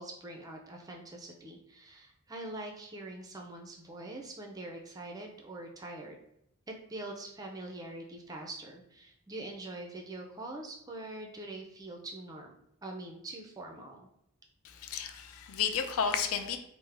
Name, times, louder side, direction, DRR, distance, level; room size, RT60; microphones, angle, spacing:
voice 1, 0.0-6.2 6.7-12.5 12.8-14.1, right 2 dB, 15° right, 2 dB, 0.4 m, -44 dB
voice 2, 14.6-16.6, left 7 dB, 70° left, 8 dB, 0.4 m, -32 dB
3.4 x 2.0 x 3.2 m, 0.78 s
head